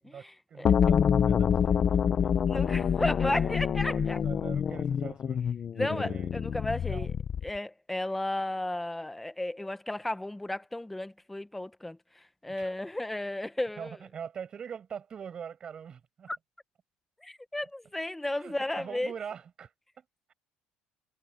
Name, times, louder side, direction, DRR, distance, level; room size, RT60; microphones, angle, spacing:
voice 1, 0.1-5.4 5.8-6.4 6.8-7.1 12.6-12.7 13.8-16.3 18.2-20.3, right 7 dB, 30° right, 6.6 m, -44 dB
sound 1, 0.6-7.6, left 8 dB, 30° left, 0.4 m, -26 dB
voice 2, 2.5-4.2 5.7-7.1 7.4-14.0 16.3-16.4 17.2-19.1, left 1 dB, 5° left, 0.9 m, -33 dB
cardioid pair, 155°, 3 cm